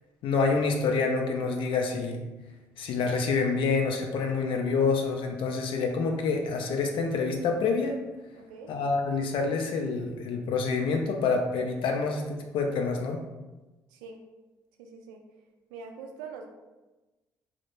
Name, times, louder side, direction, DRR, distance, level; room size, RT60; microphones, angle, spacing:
voice 1, 0.2-2.3 2.8-7.9 8.7-13.2, left 4 dB, 60° left, 2 dB, 0.4 m, -27 dB
voice 2, 8.3-8.7 13.9-14.2 14.8-15.2 15.7-16.5, right 5 dB, 80° right, 3 dB, 0.4 m, -43 dB
2.1 x 2.0 x 3.0 m, 1.1 s
hypercardioid pair, 50°, 10 cm